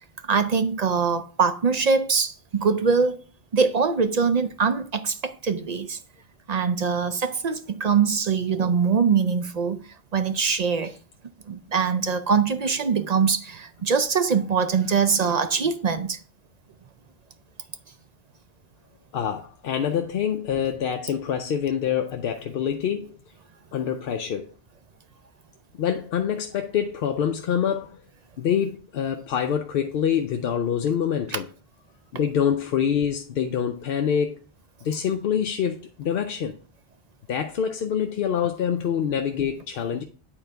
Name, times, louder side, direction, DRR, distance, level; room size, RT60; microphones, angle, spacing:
voice 1, 0.2-3.2 3.5-6.0 6.5-9.8 10.1-11.0 11.5-16.2 31.3-31.4, right 5 dB, 50° right, 0.5 m, -23 dB
voice 2, 19.1-23.2 23.7-24.5 25.8-28.0 28.4-31.5 32.1-34.4 34.8-36.5 37.3-40.0, left 8 dB, 65° left, 0.7 m, -26 dB
8.8 x 4.0 x 4.5 m
omnidirectional pair, 1.1 m